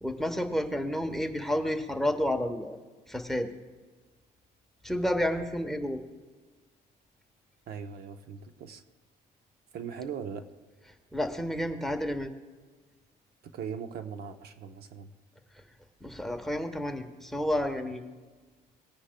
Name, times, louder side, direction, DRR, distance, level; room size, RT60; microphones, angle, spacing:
voice 1, 0.0-2.8 3.1-3.5 4.8-6.0 11.1-12.3 16.0-18.0, equal, ahead, 5 dB, 1.0 m, -30 dB
voice 2, 7.7-8.8 9.7-10.5 13.5-15.1, right 7 dB, 70° right, 8 dB, 0.8 m, -39 dB
19.0 x 9.9 x 2.2 m, 1.4 s
cardioid pair, 110°, 17 cm